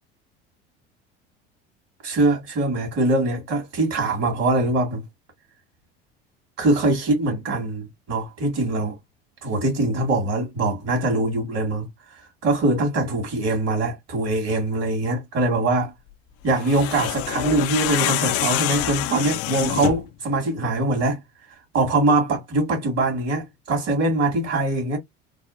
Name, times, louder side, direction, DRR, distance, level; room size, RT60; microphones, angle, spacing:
voice 1, 2.0-5.0 6.6-9.0 9.4-15.9 16.4-21.2 21.7-25.0, right 2 dB, 55° right, 2.1 m, -23 dB
sound 1, 16.5-20.1, left 15 dB, 50° left, 0.4 m, -26 dB
3.4 x 2.4 x 2.5 m
hypercardioid pair, 75°, 31 cm